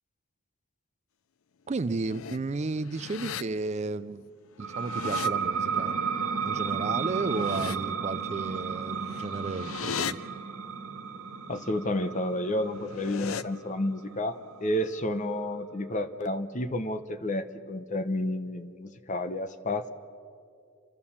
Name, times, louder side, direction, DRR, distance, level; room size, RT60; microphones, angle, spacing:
voice 1, 1.7-4.3 4.6-6.0 6.4-10.3, right 3 dB, 30° right, 15 dB, 0.4 m, -33 dB
sound 1, 1.8-2.4 2.8-3.4 4.6-5.3 7.1-7.8 9.0-10.1 12.7-13.4, left 7 dB, 70° left, 0.5 m, -37 dB
sound 2, 4.6-15.9, right 6 dB, 80° right, 1.5 m, -33 dB
voice 2, 11.5-19.9, left 1 dB, 35° left, 10 dB, 0.9 m, -31 dB
29.0 x 13.0 x 7.2 m, 2.4 s
head